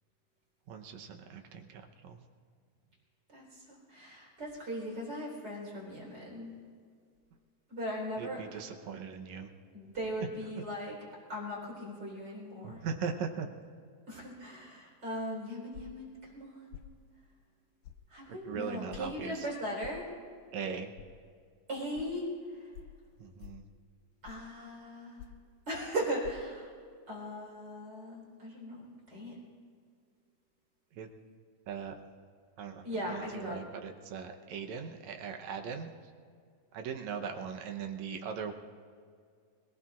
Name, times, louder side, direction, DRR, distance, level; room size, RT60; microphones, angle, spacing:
voice 1, 0.7-2.2 8.2-9.5 12.6-13.5 18.5-19.5 20.5-20.9 23.2-23.6 31.0-31.1 31.7-31.9 32.6-32.8 33.1-35.9 36.7-38.5, right 6 dB, 70° right, 4 dB, 1.9 m, -39 dB
voice 2, 3.3-6.5 7.7-8.6 9.7-11.0 11.3-12.8 14.1-16.7 18.1-20.1 21.7-22.7 24.2-25.3 25.7-26.7 27.1-29.4 32.8-33.6, equal, 30° right, -3 dB, 4.5 m, -39 dB
sound 1, 15.7-16.1 16.7-16.9 17.8-18.0 18.9-19.1 19.8-20.0 21.0-21.1 21.9-22.1 22.7-23.0 23.4-23.7 24.2-24.5 25.2-25.5 26.2-26.3, left 12 dB, 80° left, 2.3 m, -48 dB
25.5 x 18.5 x 2.5 m, 2.1 s
omnidirectional pair, 4.1 m